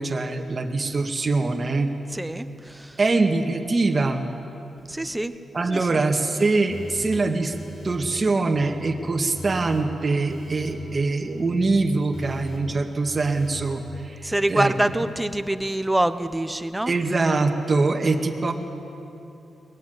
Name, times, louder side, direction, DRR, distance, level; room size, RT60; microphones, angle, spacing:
voice 1, 0.0-1.9 3.0-4.2 5.5-7.5 7.8-14.7 16.9-18.5, right 3 dB, 35° right, 4 dB, 2.0 m, -23 dB
voice 2, 2.1-3.0 4.9-5.3 5.7-6.0 14.2-16.9, right 1 dB, 10° right, 11 dB, 1.0 m, -25 dB
sound 1, 6.7-13.9, left 1 dB, 55° left, 5.0 m, -41 dB
22.0 x 21.0 x 9.5 m, 2.8 s
cardioid pair, 105°, 0 cm